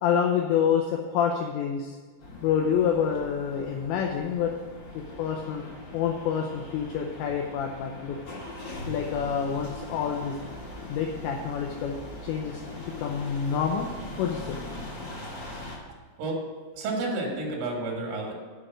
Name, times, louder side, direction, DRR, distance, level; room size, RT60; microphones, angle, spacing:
voice 1, 0.0-2.0 2.4-4.5 5.2-5.6 5.9-8.2 8.9-10.4 10.9-12.6 13.0-13.9 14.2-14.6, left 7 dB, 90° left, 2 dB, 2.5 m, -27 dB
sound 1, 2.2-15.7, left 1 dB, 75° left, 1.0 m, -41 dB
voice 2, 16.8-18.3, right 2 dB, 75° right, 0 dB, 4.2 m, -30 dB
9.2 x 5.0 x 7.8 m, 1.5 s
omnidirectional pair, 6.0 m